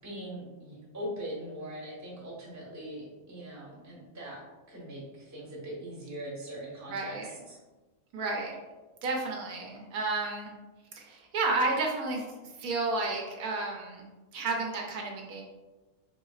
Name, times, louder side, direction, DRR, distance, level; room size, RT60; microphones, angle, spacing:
voice 1, 0.0-7.2 7.5-7.6, equal, 15° right, -6 dB, 0.9 m, -41 dB
voice 2, 6.9-7.3 8.1-8.6 9.0-10.5 10.9-14.1 14.3-15.4, right 3 dB, 80° right, 0 dB, 1.1 m, -32 dB
4.0 x 3.0 x 2.3 m, 1.2 s
omnidirectional pair, 1.5 m